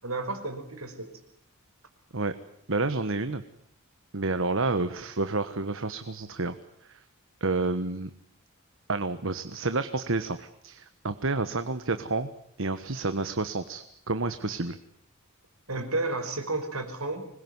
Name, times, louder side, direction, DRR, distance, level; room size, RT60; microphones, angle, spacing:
voice 1, 0.0-1.1 15.7-17.3, right 2 dB, 80° right, 7 dB, 5.5 m, -32 dB
voice 2, 2.7-3.4 4.1-6.5 6.8-7.0 7.4-8.1 8.9-12.3 12.6-14.8, right 3 dB, 60° right, 10 dB, 1.4 m, -29 dB
26.0 x 21.5 x 9.7 m, 0.69 s
head